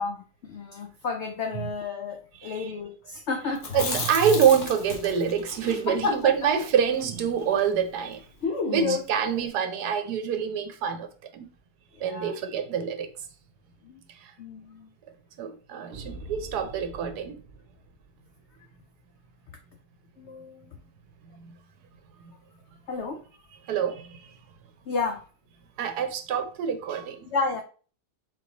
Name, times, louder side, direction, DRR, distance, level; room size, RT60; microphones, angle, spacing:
voice 1, 0.0-3.9 5.9-6.5 8.7-9.4 9.7-9.9 11.9-12.3 13.8-14.0 14.4-14.9 20.2-20.8 22.9-23.2 24.9-25.2 27.3-27.6, left 4 dB, 85° left, 0.6 m, -32 dB
Chewing mastication, 3.6-7.7 8.0-8.1 8.4-9.2, left 4 dB, 50° left, 1.2 m, -34 dB
voice 2, 3.7-8.2 8.7-11.5 12.0-13.1 14.2-14.3 15.4-17.4 21.3-21.5 23.7-24.4 25.8-27.3, right 7 dB, 70° right, 1.2 m, -26 dB
sound 1, 15.9-18.5, right 2 dB, 45° right, 0.8 m, -44 dB
4.0 x 3.2 x 3.9 m
omnidirectional pair, 1.8 m